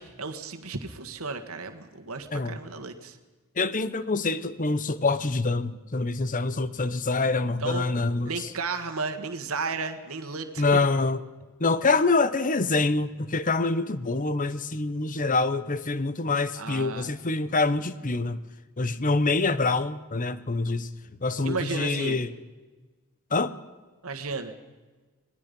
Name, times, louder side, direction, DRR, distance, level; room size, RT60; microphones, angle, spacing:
voice 1, 0.0-3.2 7.6-7.9 8.2-10.8 16.5-17.1 21.4-22.2 24.0-24.5, right 4 dB, 70° right, 6 dB, 1.7 m, -33 dB
voice 2, 3.6-8.3 10.6-11.2 11.6-18.4 18.8-20.9 21.2-22.3 23.3-23.5, left 3 dB, 35° left, 14 dB, 0.9 m, -25 dB
25.5 x 19.0 x 5.4 m, 1.3 s
head